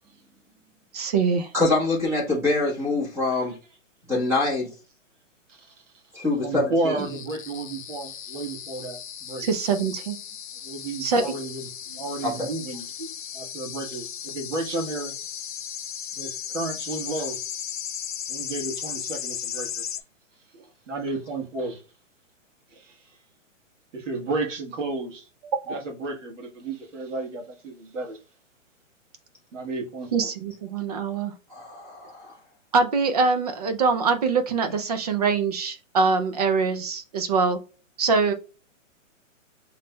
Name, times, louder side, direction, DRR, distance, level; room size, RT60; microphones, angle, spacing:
voice 1, 0.9-1.5 9.4-10.2 11.0-11.3 11.9-12.0 13.0-13.1 25.7-25.8 30.1-31.3 32.7-37.6 38.0-38.3, right 4 dB, 30° right, 0.5 m, -23 dB
voice 2, 1.5-3.6 4.1-4.7 6.1-7.0 12.2-12.3 31.5-32.3, left 2 dB, 5° right, 1.0 m, -25 dB
voice 3, 5.5-5.8 6.4-9.5 10.6-12.9 13.3-15.1 16.1-17.4 18.3-19.8 20.5-21.8 22.7-23.2 23.9-25.3 25.7-28.2 29.5-30.3, right 2 dB, 65° right, 1.5 m, -32 dB
sound 1, 7.0-20.0, left 9 dB, 40° left, 0.4 m, -36 dB
5.7 x 3.2 x 2.2 m
hypercardioid pair, 160°, 39 cm